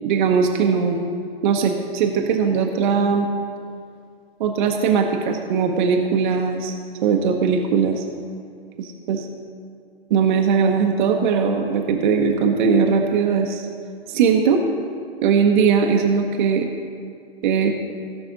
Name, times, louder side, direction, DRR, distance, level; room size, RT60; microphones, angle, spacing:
voice 1, 0.0-1.0 1.4-3.3 4.4-6.7 7.0-8.0 8.8-9.3 10.1-13.7 14.1-14.6 15.2-16.7 17.4-17.7, right 6 dB, 50° right, 2 dB, 1.1 m, -19 dB
18.0 x 6.1 x 4.0 m, 2.3 s
hypercardioid pair, 125°, 31 cm